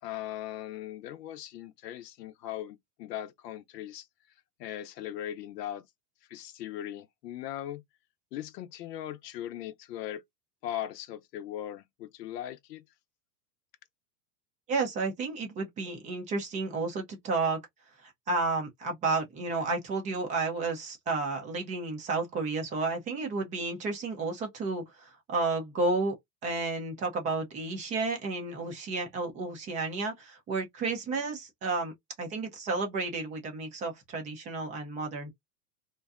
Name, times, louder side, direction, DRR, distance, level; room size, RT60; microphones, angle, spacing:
voice 1, 0.0-4.1 4.6-5.9 6.3-7.8 8.3-10.2 10.6-12.8, left 12 dB, 80° left, 0.6 m, -39 dB
voice 2, 14.7-17.6 18.0-26.2 26.4-31.9 32.2-35.3, right 3 dB, 15° right, 0.3 m, -32 dB
2.6 x 2.2 x 2.3 m
hypercardioid pair, 125°, 48 cm